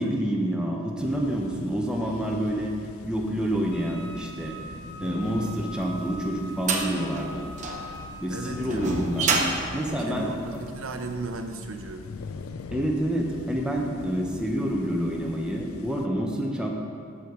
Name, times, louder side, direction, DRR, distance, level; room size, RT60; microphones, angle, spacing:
voice 1, 0.0-2.7 3.0-4.6 5.0-7.5 8.2-9.4 9.7-10.3 12.7-16.7, equal, 5° right, -1 dB, 0.7 m, -28 dB
sound 1, 1.0-16.1, left 4 dB, 85° left, 0.4 m, -42 dB
Wind instrument woodwind instrument, 3.7-9.1, left 1 dB, 55° left, 1.7 m, -43 dB
sound 2, 5.6-11.0, right 4 dB, 35° right, 0.8 m, -29 dB
voice 2, 8.3-9.0 10.1-12.1, right 3 dB, 70° right, 6 dB, 0.7 m, -35 dB
7.0 x 6.4 x 5.3 m, 2.3 s
head